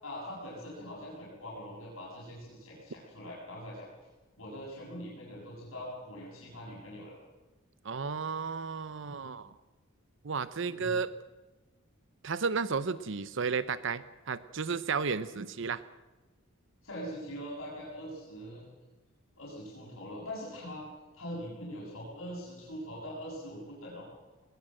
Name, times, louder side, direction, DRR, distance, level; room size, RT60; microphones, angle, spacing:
voice 1, 0.0-3.9 4.4-7.2 10.6-11.0 16.8-18.6 19.4-20.8 21.1-24.1, equal, 80° left, -4 dB, 7.2 m, -42 dB
voice 2, 7.8-9.5 10.2-11.1 12.2-15.8, right 5 dB, 65° right, 15 dB, 0.7 m, -33 dB
20.5 x 19.5 x 7.6 m, 1.2 s
head